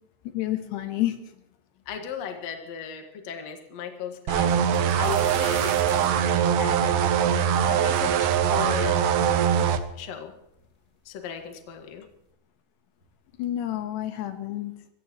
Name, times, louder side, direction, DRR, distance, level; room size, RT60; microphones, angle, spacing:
voice 1, 0.2-1.4 13.4-14.7, left 13 dB, 75° left, 7 dB, 3.3 m, -29 dB
voice 2, 1.9-4.5 5.0-6.1 6.6-7.1 7.6-9.1 9.9-10.3 11.0-12.1, left 7 dB, 50° left, 4 dB, 2.3 m, -36 dB
sound 1, 4.3-9.8, right 8 dB, 80° right, 1.9 m, -22 dB
sound 2, 4.5-8.3 8.8-8.9 9.7-9.8 10.0-10.7 11.6-11.7 12.1-12.3, left 1 dB, 15° left, 2.5 m, -45 dB
25.0 x 15.5 x 3.1 m, 0.79 s
omnidirectional pair, 5.1 m